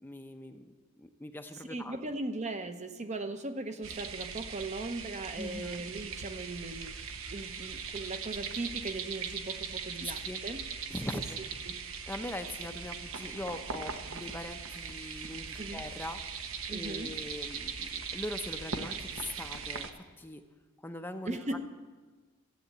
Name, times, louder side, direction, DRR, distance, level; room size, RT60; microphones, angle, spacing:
voice 1, 0.0-2.0 5.4-5.8 10.0-10.4 10.9-11.4 12.1-20.4 20.8-21.7, left 1 dB, 10° left, 6 dB, 0.6 m, -42 dB
voice 2, 1.7-10.7 11.1-11.2 11.6-11.8 15.6-15.9 16.7-17.2 21.2-21.7, right 2 dB, 35° right, 8 dB, 0.8 m, -38 dB
sound 1, 3.8-19.9, right 6 dB, 70° right, 0.9 m, -40 dB
14.5 x 8.0 x 7.9 m, 1.4 s
head